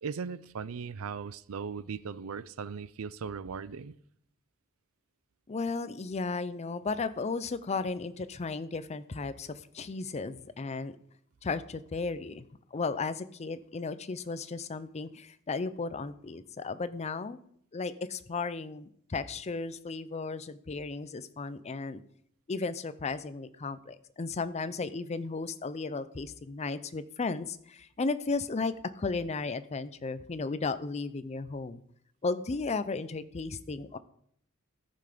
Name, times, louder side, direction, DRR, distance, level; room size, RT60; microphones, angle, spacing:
voice 1, 0.0-4.0, right 6 dB, 85° right, 0.5 m, -38 dB
voice 2, 5.5-10.9 11.4-17.4 17.7-22.0 22.5-31.8 32.2-34.0, left 4 dB, 30° left, 0.5 m, -35 dB
14.0 x 5.9 x 5.0 m
head